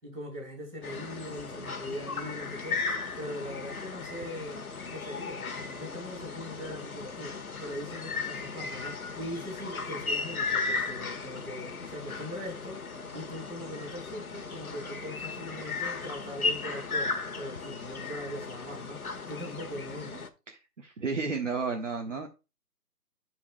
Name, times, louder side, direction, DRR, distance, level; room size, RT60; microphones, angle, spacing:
voice 1, 0.0-2.8 3.2-4.6 4.9-12.8 13.1-19.0 19.3-20.2, equal, 10° right, 4.6 m, -41 dB
sound 1, 0.8-20.3, left 4 dB, 65° left, 1.5 m, -36 dB
voice 2, 20.5-22.3, right 4 dB, 50° right, 1.3 m, -32 dB
14.0 x 4.8 x 2.2 m
hypercardioid pair, 175°, 46 cm